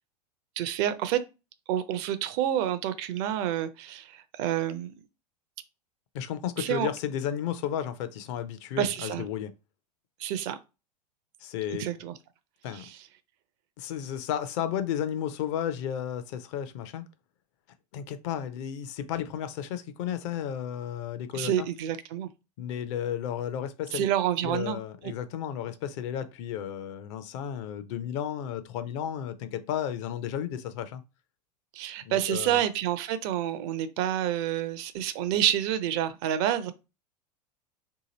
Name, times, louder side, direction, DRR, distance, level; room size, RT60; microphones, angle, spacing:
voice 1, 0.6-1.2 1.7-4.9 6.6-6.9 8.8-9.2 10.2-10.6 11.8-12.1 12.7-13.1 21.3-22.3 23.9-24.8 31.7-36.7, right 11 dB, 40° right, 0.4 m, -28 dB
voice 2, 6.1-9.5 11.4-11.8 12.6-12.9 13.8-17.0 17.9-21.7 22.6-24.1 24.4-31.0 32.0-32.6, left 9 dB, 45° left, 0.5 m, -33 dB
2.8 x 2.6 x 3.9 m
figure-of-eight pair, 90°, 21 cm